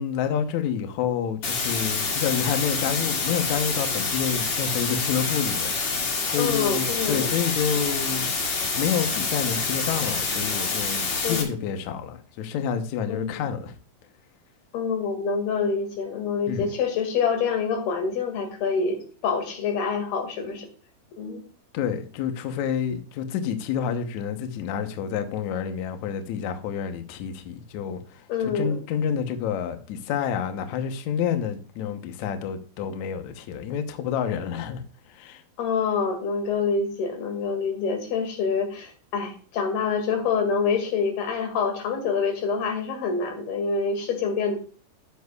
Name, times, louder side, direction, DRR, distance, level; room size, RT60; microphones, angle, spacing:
voice 1, 0.0-8.3 8.8-13.7 16.5-16.7 21.7-34.8 35.1-35.4, left 8 dB, 85° left, 1.6 m, -29 dB
sound 1, 1.4-11.4, left 4 dB, 50° left, 3.0 m, -27 dB
voice 2, 6.4-7.3 11.2-11.5 13.1-13.4 14.7-20.7 21.2-21.4 28.3-28.8 35.6-44.6, left 5 dB, 70° left, 4.0 m, -26 dB
12.5 x 10.0 x 2.4 m
omnidirectional pair, 4.9 m